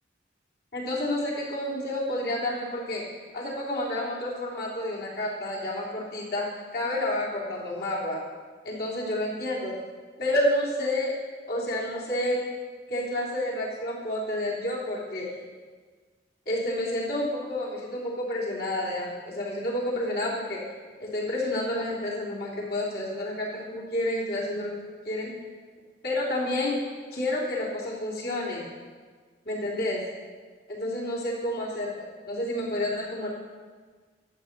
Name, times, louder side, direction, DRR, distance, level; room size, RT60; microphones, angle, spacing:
voice 1, 0.7-3.1 3.3-8.2 8.6-9.7 10.2-11.2 11.5-12.4 12.9-15.3 16.4-20.6 21.0-24.7 25.0-25.3 26.0-26.8 27.1-28.7 29.4-30.0 30.7-33.3, left 1 dB, 55° left, -6 dB, 3.4 m, -29 dB
12.0 x 8.3 x 6.0 m, 1.5 s
head